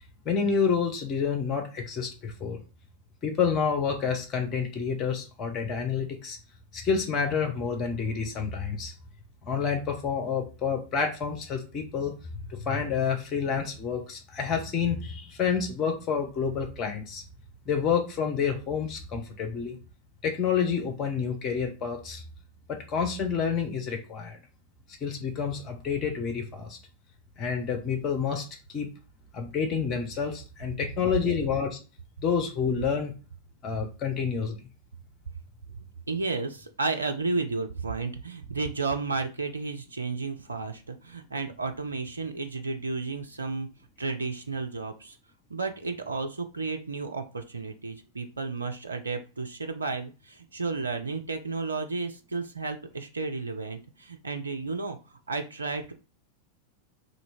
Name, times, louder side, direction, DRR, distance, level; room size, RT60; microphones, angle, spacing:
voice 1, 0.2-2.6 3.2-6.4 6.7-8.9 9.5-12.1 12.5-17.2 17.7-19.8 20.2-22.2 22.7-24.4 25.0-26.8 27.4-28.4 28.7-28.9 29.3-31.8 32.2-33.1 33.6-34.6, left 6 dB, 30° left, 3 dB, 1.1 m, -28 dB
voice 2, 36.1-43.7 44.0-45.2 45.5-55.9, right 3 dB, 75° right, 6 dB, 0.5 m, -32 dB
3.2 x 2.7 x 4.3 m, 0.32 s
figure-of-eight pair, 90°, 0 cm